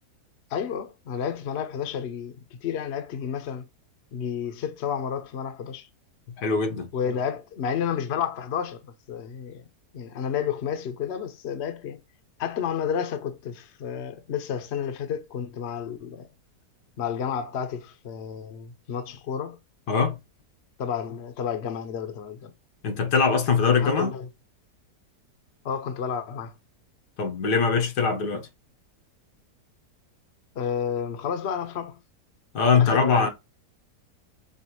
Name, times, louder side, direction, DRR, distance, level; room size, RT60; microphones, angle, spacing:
voice 1, 0.5-2.3 2.6-3.7 4.1-5.9 6.9-9.6 9.9-12.0 12.4-16.3 17.0-19.6 20.8-22.5 23.7-24.3 25.6-26.5 30.5-32.0 32.7-33.3, left 7 dB, 55° left, 0.8 m, -31 dB
voice 2, 6.4-6.9 19.9-20.2 22.8-24.1 27.2-28.5 32.5-33.3, left 5 dB, 85° left, 1.6 m, -22 dB
5.4 x 2.4 x 2.9 m
omnidirectional pair, 1.7 m